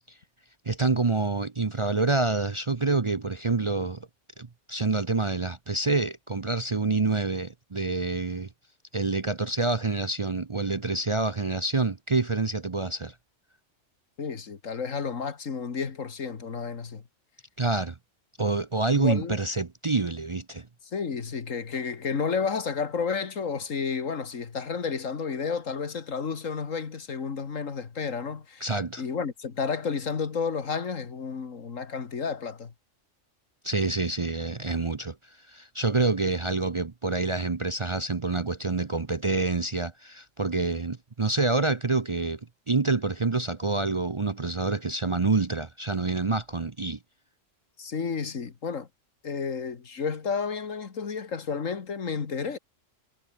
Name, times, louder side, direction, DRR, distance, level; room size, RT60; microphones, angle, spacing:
voice 1, 0.7-4.1 4.4-8.5 8.9-13.1 17.6-18.0 18.4-20.7 28.6-29.0 33.6-35.2 35.5-42.4 42.7-47.0, right 3 dB, 30° right, 0.7 m, -27 dB
voice 2, 14.2-17.1 18.9-19.4 20.9-28.7 29.0-32.7 47.8-48.9 49.2-52.6, left 5 dB, 80° left, 2.2 m, -31 dB
omnidirectional pair, 1.3 m